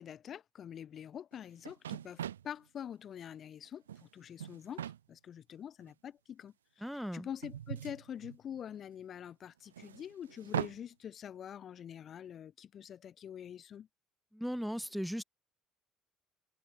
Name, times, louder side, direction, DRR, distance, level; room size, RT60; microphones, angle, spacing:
voice 1, 0.0-6.5 7.1-13.9, left 9 dB, 45° left, 0.4 m, -45 dB
sound 1, 1.3-1.4 1.7-2.5 3.7-4.1 4.4-5.0 5.9-6.0 7.4-8.7 9.7-10.8, right 10 dB, 80° right, 0.5 m, -40 dB
voice 2, 6.8-7.3 14.3-15.2, equal, ahead, 0.9 m, -37 dB
figure-of-eight pair, 55°, 0 cm